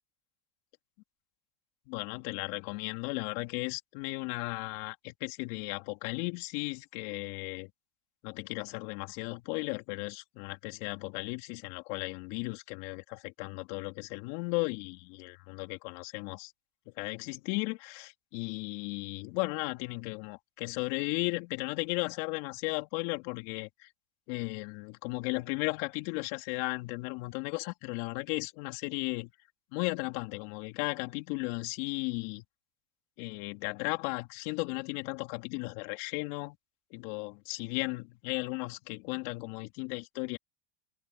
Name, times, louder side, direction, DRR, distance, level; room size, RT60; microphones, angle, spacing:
voice 1, 1.9-7.7 8.2-16.5 17.0-23.7 24.3-29.3 29.7-32.4 33.2-36.6 36.9-40.4, left 27 dB, 65° left, 3.5 m, -35 dB
hypercardioid pair, 100°, 7 cm